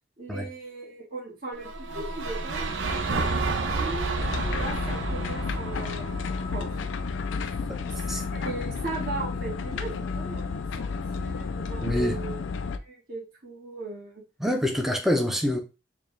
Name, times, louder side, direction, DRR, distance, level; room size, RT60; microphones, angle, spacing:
voice 1, 0.2-4.1 4.5-6.1 6.5-6.8 7.9-8.0 8.3-10.9 11.1-12.4 12.7-14.2, right 3 dB, 50° right, 1.8 m, -38 dB
sound 1, 1.6-7.7, right 3 dB, 85° right, 0.6 m, -31 dB
sound 2, 4.2-12.8, left 4 dB, 80° left, 0.4 m, -31 dB
voice 2, 11.8-12.2 14.4-15.6, left 1 dB, ahead, 0.6 m, -25 dB
4.7 x 2.3 x 3.2 m
head